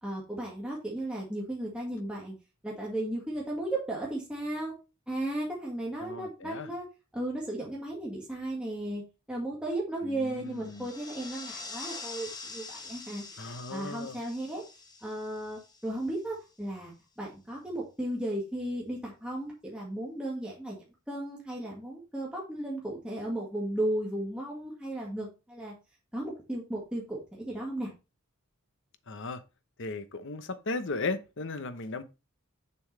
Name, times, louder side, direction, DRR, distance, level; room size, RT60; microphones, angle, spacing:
voice 1, 0.0-2.3 2.6-4.7 5.1-6.8 7.1-9.0 9.3-14.6 15.0-20.8 21.1-25.7 26.1-27.9, right 1 dB, 5° right, 1.9 m, -35 dB
voice 2, 6.0-6.7 10.0-10.9 13.4-14.2 29.1-29.4 29.8-32.0, left 3 dB, 55° left, 0.9 m, -36 dB
sound 1, 10.5-16.3, left 3 dB, 20° left, 1.4 m, -45 dB
7.0 x 7.0 x 3.3 m
head